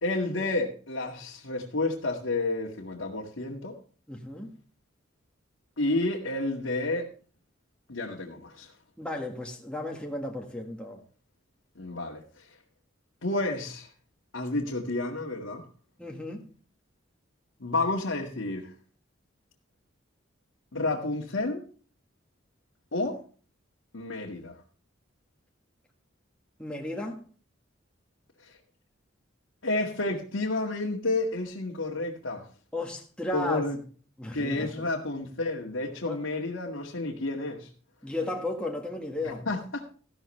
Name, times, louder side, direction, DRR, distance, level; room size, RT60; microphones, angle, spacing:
voice 1, 0.0-3.8 5.8-7.1 7.9-8.7 11.8-12.5 13.2-13.9 14.3-15.6 17.6-18.7 20.7-21.6 22.9-23.2 23.9-24.6 28.4-28.5 29.6-32.5 33.3-33.8 34.3-37.7 39.2-39.8, left 2 dB, 85° left, -2 dB, 2.0 m, -30 dB
voice 2, 4.1-4.6 9.0-11.0 16.0-16.5 26.6-27.2 32.7-33.7 34.2-34.9 36.0-36.2 38.0-39.5, left 1 dB, 5° left, 0 dB, 1.7 m, -34 dB
15.0 x 12.0 x 3.3 m, 0.39 s
head